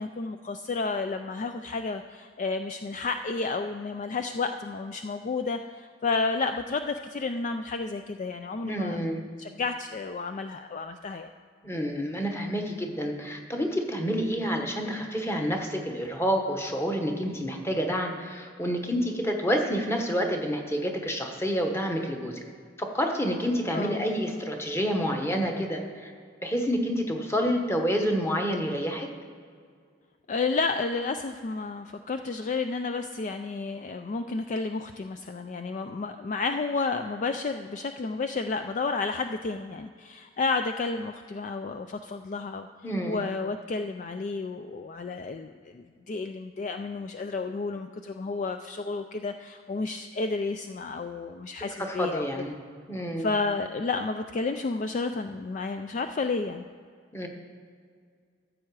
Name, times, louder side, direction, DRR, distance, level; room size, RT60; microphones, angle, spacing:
voice 1, 0.0-9.1 9.4-11.3 23.7-24.1 30.3-42.7 43.1-52.2 53.2-56.7, left 4 dB, 40° left, 7 dB, 0.3 m, -31 dB
voice 2, 8.6-9.2 11.6-22.4 22.8-26.1 26.4-29.1 42.8-43.2 51.8-52.5 52.9-53.3 57.1-57.3, equal, 15° left, 2 dB, 1.1 m, -28 dB
14.0 x 7.5 x 4.7 m, 2.1 s
head